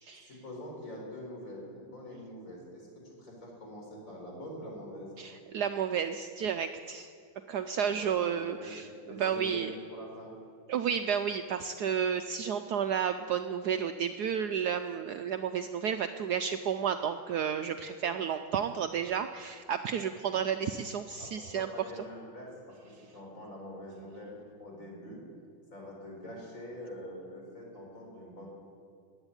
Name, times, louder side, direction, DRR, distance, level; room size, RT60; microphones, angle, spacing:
voice 1, 0.1-5.1 7.9-10.3 21.2-25.2 25.7-28.5, equal, 40° left, -1 dB, 4.7 m, -45 dB
voice 2, 5.2-7.1 7.5-9.7 10.7-21.7, right 8 dB, 75° right, 8 dB, 0.9 m, -32 dB
15.0 x 9.7 x 9.8 m, 2.4 s
omnidirectional pair, 2.2 m